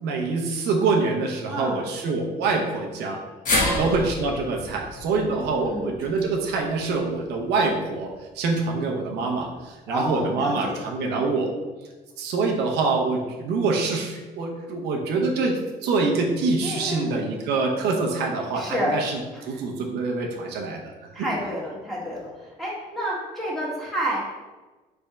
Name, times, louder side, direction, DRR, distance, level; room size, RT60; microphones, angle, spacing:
voice 1, 0.0-3.2 3.8-11.5 12.2-20.9 21.2-21.3, right 3 dB, 85° right, 1 dB, 0.8 m, -25 dB
voice 2, 1.5-1.8 3.5-3.9 5.6-5.9 9.9-10.7 16.6-17.1 18.5-19.0 21.1-22.3 22.6-24.3, equal, ahead, -6 dB, 1.5 m, -29 dB
sound 1, 3.5-7.7 8.1-8.2 9.3-9.4, left 1 dB, 50° left, 1.5 m, -30 dB
3.6 x 3.4 x 4.2 m, 1.2 s
cardioid pair, 110°, 17 cm